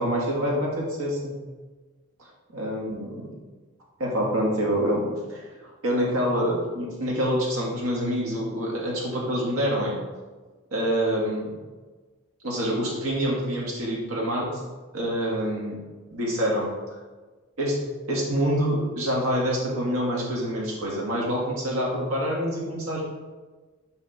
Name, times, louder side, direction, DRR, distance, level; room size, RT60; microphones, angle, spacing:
voice 1, 0.0-1.3 2.5-3.3 4.0-5.5 5.8-10.0 10.7-11.5 12.4-14.5 14.9-15.8 16.1-16.7 17.6-17.8 18.1-23.0, equal, 90° right, -4 dB, 1.7 m, -26 dB
6.0 x 3.5 x 5.9 m, 1.3 s
head